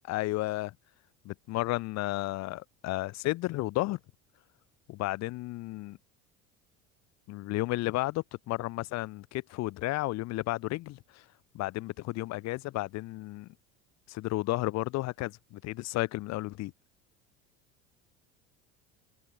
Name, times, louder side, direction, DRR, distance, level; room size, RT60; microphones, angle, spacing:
voice 1, 0.1-0.7 1.3-4.0 4.9-6.0 7.3-11.2 11.5-13.5 14.1-16.7, left 18 dB, 60° left, 7.0 m, -33 dB
supercardioid pair, 105°, 30 cm